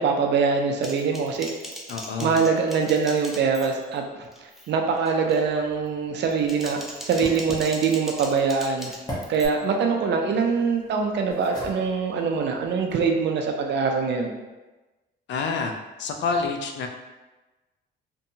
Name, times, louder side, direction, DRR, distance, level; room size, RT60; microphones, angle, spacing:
voice 1, 0.0-1.5 2.2-6.8 7.0-8.9 9.3-14.3, right 5 dB, 60° right, 2 dB, 0.5 m, -23 dB
Typing, 0.8-4.0 4.3-4.7 5.1-5.4 6.2-9.5, equal, ahead, 0.4 m, -39 dB
voice 2, 1.9-2.4 15.3-15.7 16.0-16.9, left 4 dB, 65° left, 4 dB, 0.4 m, -27 dB
sound 1, 5.4-13.1, equal, 20° left, 0.9 m, -42 dB
2.7 x 2.2 x 2.6 m, 1.2 s
cardioid pair, 90°, 20 cm